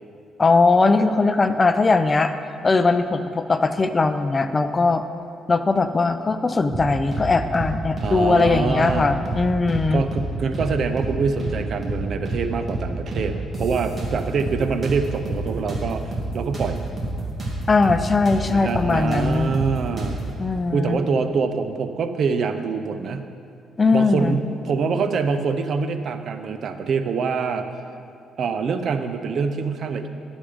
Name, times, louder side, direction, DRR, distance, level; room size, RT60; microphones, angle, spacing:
voice 1, 0.4-2.3 2.6-5.0 5.5-10.0 17.7-19.5 20.4-21.0 23.8-24.4, left 3 dB, 30° left, 10 dB, 0.5 m, -20 dB
sound 1, 6.7-7.3 7.5-7.7 8.0-9.0 9.3-9.4 9.7-10.7 11.0-11.1 11.4-12.4 12.7-12.8 13.1-14.6 14.8-17.6 17.8-18.0 18.3-20.3, right 2 dB, 30° right, 2.4 m, -28 dB
voice 2, 8.0-9.1 9.9-16.8 18.5-20.2 20.7-23.3 23.9-27.7 28.4-30.1, right 5 dB, 60° right, 8 dB, 0.7 m, -25 dB
11.5 x 7.3 x 5.0 m, 2.5 s
cardioid pair, 90°, 0 cm